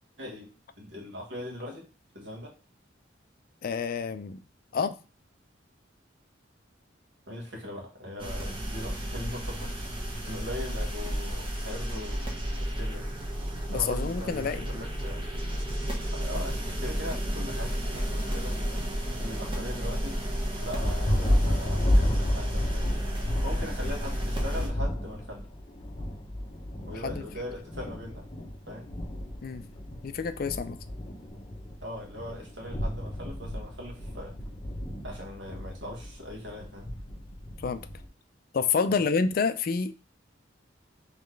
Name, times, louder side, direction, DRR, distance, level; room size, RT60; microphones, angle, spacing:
voice 1, 0.2-1.9 2.1-2.6 7.3-9.8 10.2-12.2 12.6-13.1 13.7-15.2 16.1-18.9 19.2-20.2 20.6-23.0 23.4-25.5 26.9-28.3 28.7-28.9 31.8-34.4 35.0-36.9 38.9-39.0, left 1 dB, 70° right, 1.4 m, -40 dB
voice 2, 3.6-4.4 4.7-5.0 13.7-14.7 27.0-27.2 29.4-29.6 30.0-30.8 37.6-37.9 38.5-39.9, left 5 dB, 50° left, 0.3 m, -28 dB
sound 1, 8.2-24.7, equal, 25° right, 1.0 m, -32 dB
Thunder, 20.5-38.1, left 1 dB, 25° left, 0.8 m, -32 dB
4.0 x 3.2 x 3.2 m
head